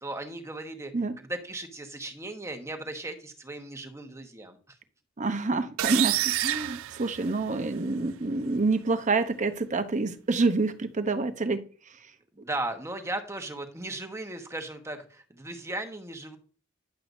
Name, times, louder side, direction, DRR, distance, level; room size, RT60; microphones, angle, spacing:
voice 1, 0.0-0.9 1.2-4.6 12.3-16.4, right 2 dB, 15° right, 1.1 m, -36 dB
voice 2, 5.2-11.6, right 3 dB, 40° right, 0.8 m, -27 dB
sound 1, 5.8-7.7, right 15 dB, 80° right, 0.3 m, -28 dB
10.5 x 7.6 x 2.7 m
head